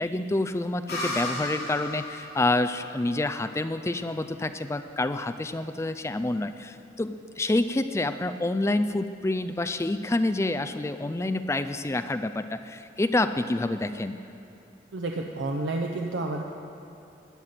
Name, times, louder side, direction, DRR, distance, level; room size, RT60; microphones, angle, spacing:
voice 1, 0.0-14.2, left 2 dB, 15° left, 9 dB, 0.3 m, -28 dB
sound 1, 0.9-4.4, left 1 dB, 55° left, 2.9 m, -36 dB
voice 2, 14.9-16.4, right 2 dB, 85° right, 2 dB, 0.7 m, -30 dB
12.5 x 5.8 x 9.2 m, 2.8 s
head